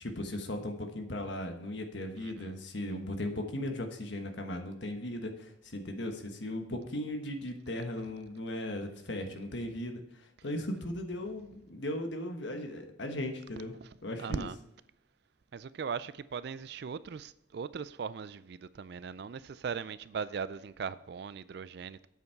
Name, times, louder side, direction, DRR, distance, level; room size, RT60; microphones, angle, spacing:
voice 1, 0.0-13.7 14.0-14.5, left 1 dB, 65° left, 1.3 m, -37 dB
voice 2, 2.2-2.6 13.8-13.9 14.2-14.6 15.5-22.1, right 6 dB, 55° right, 0.3 m, -39 dB
8.2 x 7.1 x 4.5 m
head